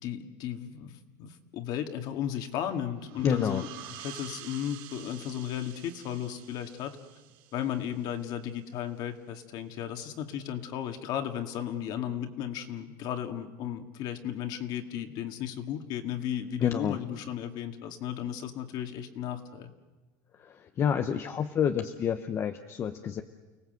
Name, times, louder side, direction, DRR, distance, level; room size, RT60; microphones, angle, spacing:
voice 1, 0.0-7.0 7.5-19.7, left 10 dB, 45° left, 6 dB, 2.0 m, -35 dB
sound 1, 3.0-8.4, right 12 dB, 55° right, 3.1 m, -48 dB
voice 2, 3.2-3.6 16.6-17.0 20.4-23.2, left 8 dB, 25° left, 7 dB, 0.8 m, -29 dB
30.0 x 18.5 x 7.8 m, 1.2 s
supercardioid pair, 160°, 10 cm